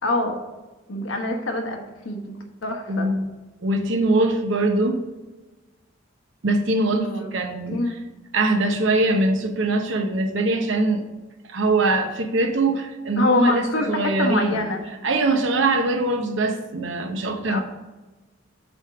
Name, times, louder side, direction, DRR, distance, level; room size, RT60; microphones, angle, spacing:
voice 1, 0.0-0.4 0.9-3.1 6.9-7.3 7.7-8.0 13.2-14.8 17.5-17.6, left 2 dB, 85° left, 4 dB, 1.1 m, -25 dB
voice 2, 2.9-3.3 3.6-5.0 6.4-7.8 8.3-11.0 11.4-14.6 15.0-17.6, right 2 dB, 75° right, 4 dB, 0.9 m, -22 dB
7.9 x 3.6 x 5.8 m, 1.2 s
head